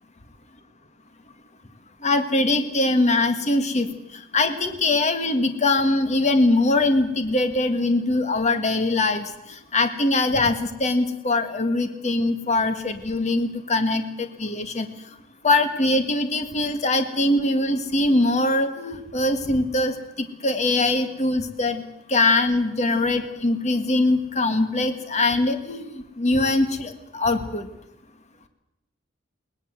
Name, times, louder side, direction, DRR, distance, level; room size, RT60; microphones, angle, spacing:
voice 1, 2.0-14.9 15.4-21.8 22.1-27.7, left 2 dB, 35° left, 8 dB, 1.7 m, -22 dB
21.5 x 20.0 x 8.1 m, 0.85 s
head